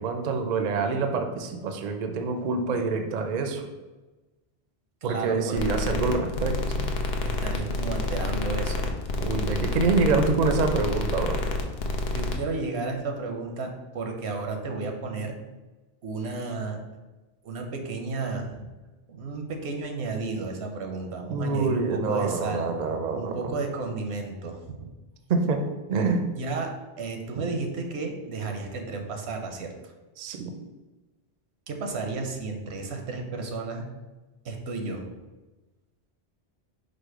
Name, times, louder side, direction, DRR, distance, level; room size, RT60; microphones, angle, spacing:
voice 1, 0.0-3.7 5.0-6.9 9.2-11.4 21.3-23.5 25.3-25.6 25.9-26.3 30.2-30.5, right 4 dB, 55° right, 5 dB, 0.5 m, -26 dB
voice 2, 5.0-6.1 7.2-8.9 12.0-15.4 16.0-16.8 17.4-18.7 19.1-22.8 23.1-24.9 26.3-29.9 31.7-33.9 34.4-35.1, right 3 dB, 80° right, 3 dB, 0.9 m, -33 dB
sound 1, 5.6-12.4, left 2 dB, 70° left, 0.8 m, -28 dB
4.9 x 2.1 x 4.6 m, 1.2 s
omnidirectional pair, 1.1 m